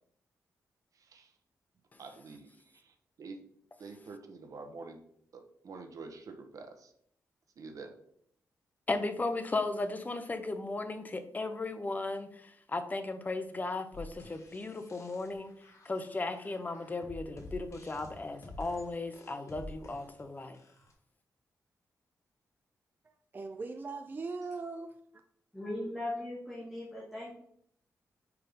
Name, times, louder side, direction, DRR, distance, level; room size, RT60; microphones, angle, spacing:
voice 1, 0.9-1.3 2.0-3.4 3.8-5.0 5.3-6.9 7.6-8.0, right 4 dB, 65° right, 1.0 m, -47 dB
voice 2, 8.9-15.5 15.8-20.6, left 3 dB, 25° left, 0.7 m, -36 dB
sound 1, 13.9-20.9, left 2 dB, 50° left, 1.6 m, -50 dB
voice 3, 23.3-24.9, right 3 dB, 30° right, 0.4 m, -39 dB
voice 4, 25.5-27.3, left 1 dB, ahead, 1.8 m, -38 dB
5.1 x 4.7 x 5.1 m
wide cardioid pair, 120°, 6 cm